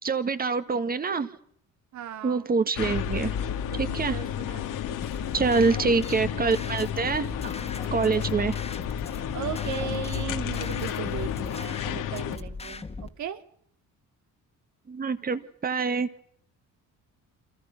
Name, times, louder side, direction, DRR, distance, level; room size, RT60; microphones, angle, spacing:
voice 1, 0.0-1.3 2.2-3.3 3.8-4.2 5.3-7.3 7.9-8.6 14.9-16.1, right 4 dB, 30° right, 11 dB, 1.8 m, -25 dB
voice 2, 1.9-2.5 3.7-5.5 9.3-13.4, right 9 dB, 65° right, 9 dB, 2.4 m, -37 dB
sound 1, 2.8-12.4, left 10 dB, 85° left, 2.8 m, -31 dB
sound 2, 5.0-13.1, left 3 dB, 20° left, 2.0 m, -40 dB
28.5 x 28.0 x 5.9 m, 0.65 s
cardioid pair, 155°, 31 cm